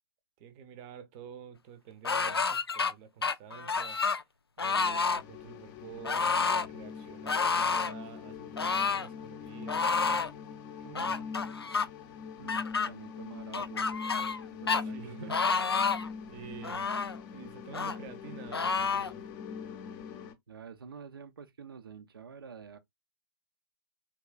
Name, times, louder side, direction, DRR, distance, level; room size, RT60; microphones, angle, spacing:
voice 1, 0.4-4.0 4.6-9.9 10.8-11.3 14.8-15.4 16.3-16.9 17.3-19.2, right 8 dB, 30° right, 0.7 m, -49 dB
sound 1, 2.0-2.9 3.2-4.2 4.6-5.2 6.0-6.7 7.3-7.9 8.6-9.1 9.7-10.3 10.9-11.9 12.5-12.9 13.5-14.4 14.7-14.8 15.3-16.1 16.6-17.2 17.7-18.0 18.5-19.1, left 5 dB, 85° left, 0.4 m, -29 dB
sound 2, 4.8-20.3, left 6 dB, 25° left, 0.6 m, -43 dB
voice 2, 12.4-15.3 20.5-22.8, right 6 dB, 65° right, 0.5 m, -48 dB
3.5 x 3.0 x 2.2 m
figure-of-eight pair, 120°, 13 cm